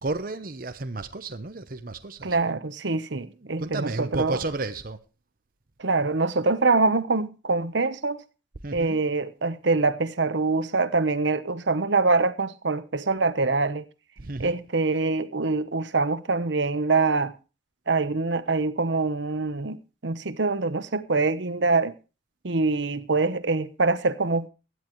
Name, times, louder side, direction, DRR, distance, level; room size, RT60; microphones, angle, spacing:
voice 1, 0.0-2.4 3.3-5.0 8.6-9.0 14.2-14.6, right 2 dB, 45° right, 0.8 m, -32 dB
voice 2, 2.2-4.4 5.8-8.2 8.7-13.9 14.4-17.3 17.9-19.8 20.0-21.9 22.4-24.5, right 3 dB, 70° right, 1.0 m, -24 dB
16.0 x 11.5 x 3.1 m
head